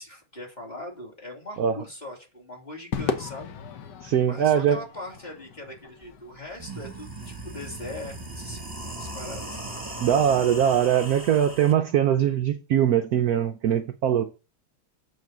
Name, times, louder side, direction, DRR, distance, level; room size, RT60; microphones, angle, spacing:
voice 1, 0.0-3.5 4.2-8.6 9.0-9.7, left 1 dB, 20° left, 2.9 m, -40 dB
Crowd / Fireworks, 2.9-7.4, left 6 dB, 60° left, 1.4 m, -36 dB
voice 2, 4.0-4.8 10.0-14.3, right 9 dB, 70° right, 0.9 m, -22 dB
sound 1, 6.0-6.1 6.5-11.7, right 1 dB, 10° right, 1.7 m, -38 dB
8.4 x 4.0 x 7.0 m
omnidirectional pair, 2.2 m